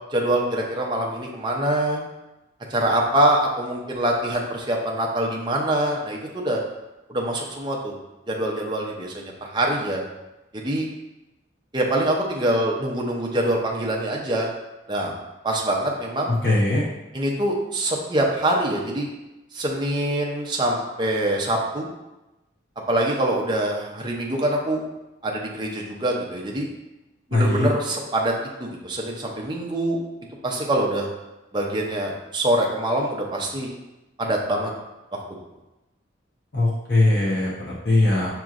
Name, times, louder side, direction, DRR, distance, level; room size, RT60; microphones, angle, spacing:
voice 1, 0.1-2.0 2.7-6.6 7.1-7.9 8.3-10.0 10.5-10.9 11.7-14.5 14.9-15.1 15.4-16.3 17.1-19.1 19.5-21.9 22.9-24.8 25.2-26.7 27.3-28.3 28.6-30.0 30.4-31.1 31.5-33.7 34.2-34.7 35.1-35.2, right 1 dB, 25° right, -1 dB, 0.5 m, -24 dB
voice 2, 16.3-16.8 27.3-27.7 36.5-38.3, left 2 dB, 55° left, -5 dB, 0.8 m, -20 dB
6.0 x 2.9 x 2.4 m, 1.0 s
head